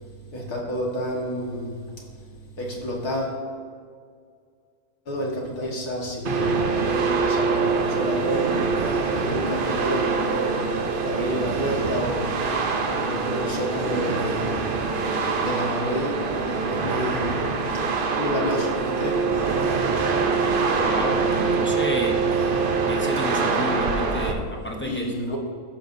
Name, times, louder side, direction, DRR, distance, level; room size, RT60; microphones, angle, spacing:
voice 1, 0.3-1.8 2.6-3.4 5.1-8.5 9.1-12.3 12.9-14.5 15.4-17.5 18.2-19.2 24.8-25.4, equal, 80° left, -2 dB, 2.2 m, -29 dB
sound 1, 6.2-24.3, right 4 dB, 50° right, 0.7 m, -24 dB
voice 2, 20.8-22.2 22.8-25.1, equal, 20° left, -1 dB, 0.3 m, -30 dB
14.0 x 6.8 x 2.7 m, 2.1 s
omnidirectional pair, 1.6 m